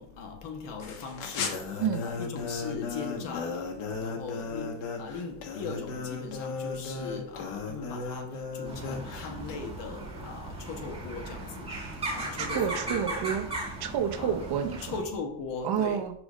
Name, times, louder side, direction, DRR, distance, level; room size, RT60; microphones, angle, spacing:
voice 1, 0.0-1.6 2.0-11.7 12.1-13.0 14.2-14.4 14.8-16.1, left 4 dB, 60° left, 1.4 m, -39 dB
sound 1, 0.8-9.6, left 4 dB, 85° left, 1.6 m, -36 dB
sound 2, 8.7-15.0, right 2 dB, 10° right, 2.0 m, -37 dB
voice 2, 12.4-13.5 13.8-14.9 15.6-16.1, right 8 dB, 50° right, 0.9 m, -29 dB
5.0 x 4.8 x 6.2 m
cardioid pair, 175°, 49 cm